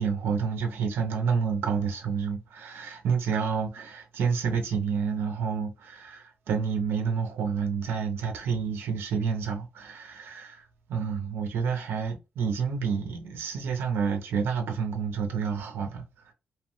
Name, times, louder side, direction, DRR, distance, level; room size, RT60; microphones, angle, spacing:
voice 1, 0.0-16.3, right 6 dB, 90° right, 0.5 m, -29 dB
2.8 x 2.0 x 3.0 m
wide cardioid pair, 180°, 4 cm